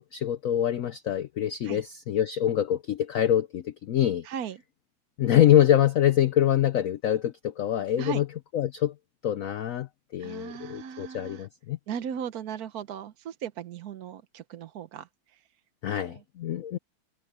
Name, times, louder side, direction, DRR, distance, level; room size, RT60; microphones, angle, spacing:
voice 1, 0.0-4.3 5.2-8.3 8.5-8.9 9.2-11.8 15.8-16.8, left 11 dB, 90° left, 0.7 m, -25 dB
voice 2, 4.2-4.6 8.0-8.2 10.2-11.5 11.9-15.4 15.9-16.2, right 8 dB, 60° right, 1.1 m, -37 dB
omnidirectional pair, 2.2 m